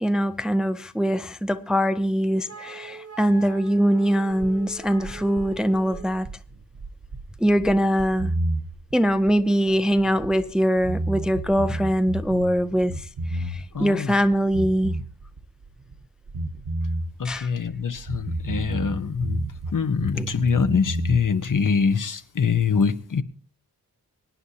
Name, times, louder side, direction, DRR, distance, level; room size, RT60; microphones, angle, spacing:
voice 1, 0.0-6.3 7.4-8.3 8.9-15.0 17.2-17.5 20.2-20.3, equal, ahead, 0.5 m, -22 dB
Wind instrument woodwind instrument, 2.5-6.2, right 6 dB, 40° right, 1.1 m, -43 dB
sound 1, 4.4-10.5 10.8-13.9 14.1-16.0 16.3-19.7 20.0-21.2, right 1 dB, 60° right, 1.2 m, -31 dB
voice 2, 13.7-14.1 17.2-19.5 19.7-23.2, left 5 dB, 55° left, 0.9 m, -24 dB
24.0 x 9.7 x 2.8 m
wide cardioid pair, 125°, 38 cm